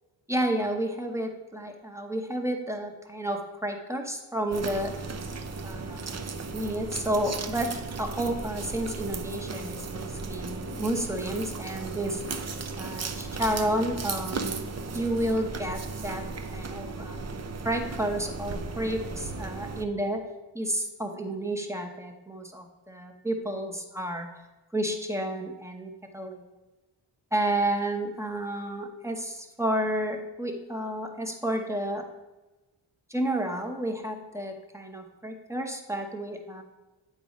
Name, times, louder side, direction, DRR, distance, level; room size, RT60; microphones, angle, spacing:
voice 1, 0.3-4.9 5.6-6.2 6.5-7.7 8.0-12.2 12.8-14.6 14.9-17.2 17.6-20.2 20.5-24.3 24.7-26.4 27.3-32.0 33.1-36.6, right 1 dB, 5° right, 3 dB, 0.8 m, -31 dB
sound 1, 4.5-19.9, right 4 dB, 35° right, 0.5 m, -36 dB
8.8 x 4.1 x 4.9 m, 1.1 s
wide cardioid pair, 100°, 49 cm